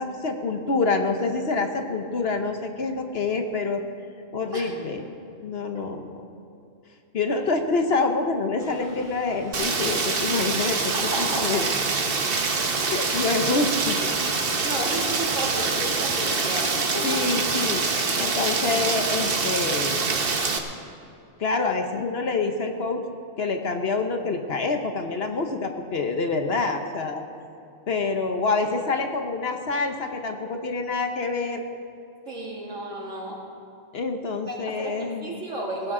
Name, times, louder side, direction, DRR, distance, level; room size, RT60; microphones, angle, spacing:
voice 1, 0.0-3.8 4.3-5.0 5.4-6.1 7.1-10.9 11.2-11.6 12.8-14.0 17.0-17.8 18.2-20.0 21.4-23.0 23.4-27.2 27.9-31.6 33.9-35.4, left 3 dB, 55° left, 5 dB, 1.1 m, -26 dB
sound 1, 8.6-15.7, equal, 5° right, 3.9 m, -45 dB
Rain, 9.5-20.6, right 4 dB, 45° right, 1.2 m, -25 dB
voice 2, 10.9-11.6 12.8-13.1 14.0-14.1 14.6-17.2 32.3-33.4 34.5-35.9, right 1 dB, 70° right, -3 dB, 3.0 m, -33 dB
17.5 x 15.5 x 3.8 m, 2.6 s
omnidirectional pair, 1.4 m